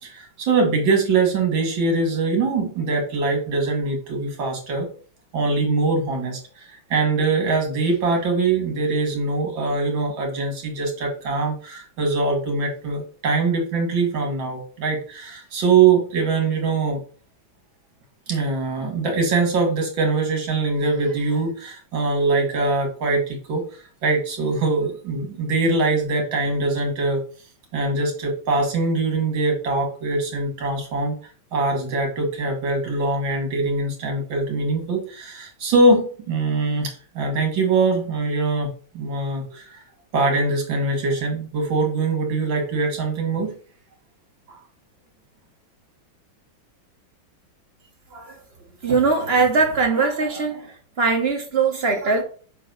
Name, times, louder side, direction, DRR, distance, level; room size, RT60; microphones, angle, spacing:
voice 1, 0.0-4.9 5.3-17.0 18.3-27.2 27.7-31.2 31.5-39.8 40.1-43.5 44.5-44.6, right 3 dB, 70° right, 2 dB, 2.5 m, -22 dB
voice 2, 48.8-52.2, right 4 dB, 35° right, 3 dB, 1.1 m, -21 dB
6.9 x 3.0 x 5.2 m, 0.41 s
omnidirectional pair, 2.2 m